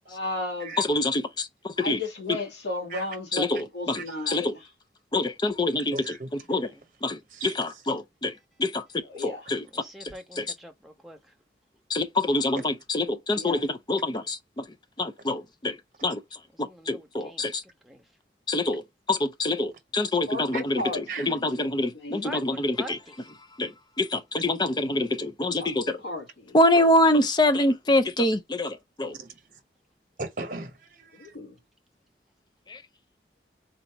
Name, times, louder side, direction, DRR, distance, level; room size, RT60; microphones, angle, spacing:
voice 1, 0.1-0.8 1.8-4.7 9.0-9.5 13.3-13.7 20.3-22.4 25.6-26.6 31.1-31.6, left 2 dB, 85° left, 2.0 m, -35 dB
voice 2, 0.8-2.0 3.3-4.0 4.3-4.5 5.1-5.9 6.5-6.7 7.0-8.3 8.6-9.6 10.4-10.5 11.9-14.6 15.0-16.2 16.9-17.6 18.5-18.8 19.1-23.0 23.6-23.7 24.0-26.0 26.5-29.1 32.7-32.8, left 1 dB, 25° left, 0.5 m, -25 dB
voice 3, 5.8-6.5 7.3-7.8 9.1-9.6 12.5-12.6 20.5-20.6 21.1-21.3 29.1-29.6 30.2-31.4, right 3 dB, 45° right, 1.0 m, -38 dB
voice 4, 9.7-11.2 16.5-17.5 17.8-18.0 22.2-23.2, equal, ahead, 0.8 m, -43 dB
4.0 x 2.5 x 4.5 m
head